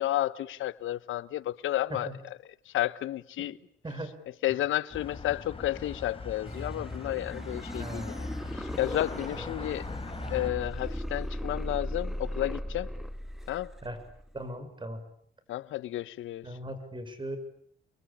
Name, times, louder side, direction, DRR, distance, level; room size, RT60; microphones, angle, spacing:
voice 1, 0.0-3.6 4.4-9.8 10.3-12.9 13.5-13.7 15.5-16.6, left 14 dB, 80° left, 1.3 m, -32 dB
voice 2, 3.8-4.2 7.8-8.2 9.3-9.4 10.2-10.3 13.8-14.0 14.3-15.0 16.4-17.4, right 1 dB, 25° right, 7.1 m, -38 dB
sound 1, 4.9-10.5, left 4 dB, 30° left, 4.9 m, -41 dB
sound 2, 6.4-14.5, equal, ahead, 1.9 m, -38 dB
29.5 x 23.0 x 8.8 m
cardioid pair, 90°, 20 cm